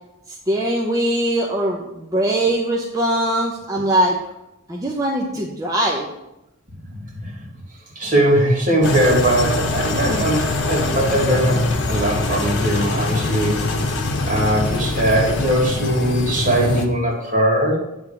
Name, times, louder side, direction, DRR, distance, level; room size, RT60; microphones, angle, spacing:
voice 1, 0.5-4.2 4.7-6.1, right 1 dB, 15° right, -3 dB, 0.7 m, -21 dB
voice 2, 8.0-13.6 14.2-17.8, right 1 dB, 40° right, -3 dB, 2.2 m, -20 dB
sound 1, 8.8-16.8, left 2 dB, 60° left, 0.9 m, -23 dB
9.4 x 3.6 x 6.8 m, 0.92 s
head